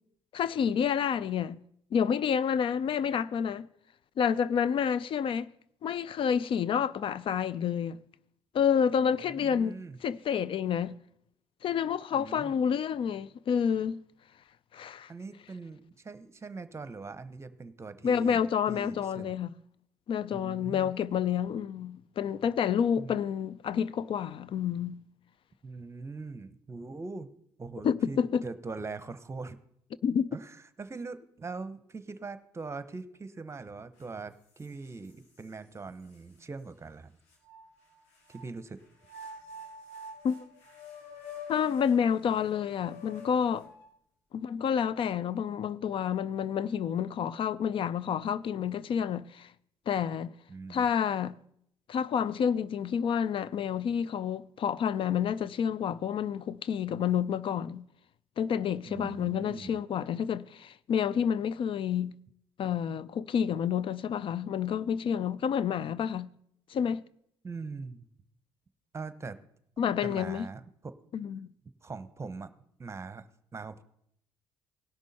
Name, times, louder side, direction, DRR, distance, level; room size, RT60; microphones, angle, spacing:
voice 1, 0.3-1.6 1.9-3.7 4.2-5.5 5.8-8.0 8.5-9.8 10.0-11.0 11.6-14.0 14.7-15.1 18.0-19.5 20.1-25.0 27.8-28.4 30.0-30.3 40.2-40.5 41.5-43.7 44.3-49.5 49.9-50.3 50.7-51.3 51.9-57.8 58.4-62.1 62.6-66.3 66.7-67.0 69.8-70.5 71.1-71.5, left 8 dB, 55° left, 0.4 m, -29 dB
voice 2, 9.0-10.0 12.1-12.5 15.1-19.3 20.3-20.9 23.0-23.2 25.6-27.3 27.6-29.6 30.3-37.1 38.3-38.8 50.5-50.9 58.9-59.8 67.4-68.1 68.9-69.4 70.0-70.9 71.8-72.5 72.8-73.3 73.5-73.8, right 4 dB, 25° right, 1.0 m, -42 dB
sound 1, 34.0-34.1 34.6-35.5 36.1-36.2 37.3-38.4 39.0-43.9, left 3 dB, 85° left, 3.4 m, -46 dB
18.0 x 6.2 x 4.2 m
supercardioid pair, 75°, 11 cm